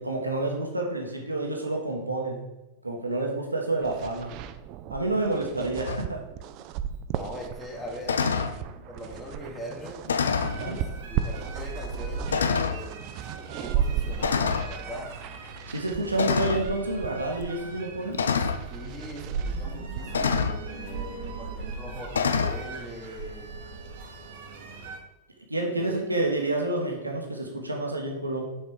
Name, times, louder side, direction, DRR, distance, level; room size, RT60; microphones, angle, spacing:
voice 1, 0.0-2.4 2.8-4.3 4.9-6.2 10.5-10.8 15.7-18.2 25.5-28.4, right 2 dB, 85° right, 1 dB, 1.0 m, -29 dB
sound 1, 3.8-20.6, right 9 dB, 40° right, 0.4 m, -36 dB
sound 2, 5.9-6.0 8.1-8.5 10.1-10.6 11.4-11.5 12.3-12.8 14.2-14.7 16.2-16.7 18.1-18.6 20.1-20.6 22.1-22.6, left 6 dB, 70° left, 0.4 m, -26 dB
voice 2, 7.1-8.3 8.9-10.0 10.6-13.1 13.6-15.1 18.7-23.5 25.8-26.2, left 1 dB, 20° left, -1 dB, 1.6 m, -41 dB
sound 3, 10.3-25.0, right 4 dB, 55° right, 0.9 m, -39 dB
6.5 x 4.3 x 4.9 m, 1.0 s
figure-of-eight pair, 90°, 0 cm